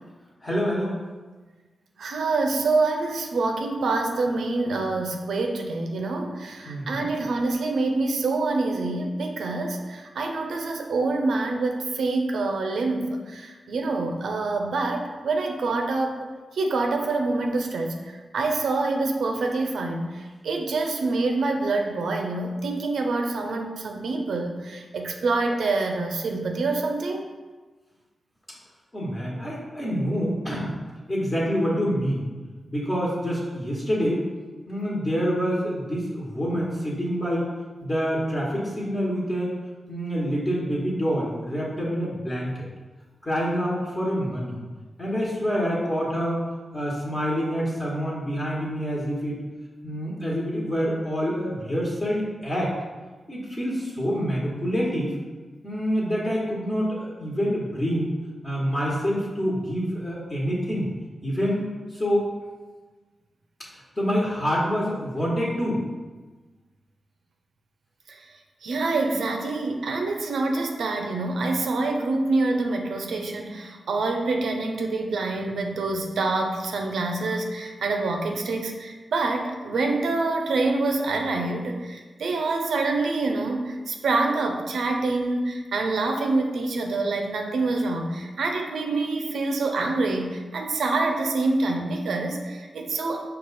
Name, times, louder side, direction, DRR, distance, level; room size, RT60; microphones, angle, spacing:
voice 1, 0.4-1.0 6.6-7.0 28.9-30.7 31.1-32.2 32.7-34.3 34.7-37.5 37.8-39.5 39.9-42.5 43.2-44.6 45.0-46.4 46.7-49.4 49.8-52.7 53.3-55.1 55.6-58.1 58.4-60.9 61.2-61.7 61.9-62.3 64.0-65.8, equal, 35° left, -6 dB, 1.2 m, -26 dB
voice 2, 2.0-16.3 16.5-27.3 68.1-68.2 68.6-93.2, right 3 dB, 85° right, 3 dB, 0.5 m, -26 dB
4.6 x 2.4 x 4.1 m, 1.3 s
cardioid pair, 50°, 0 cm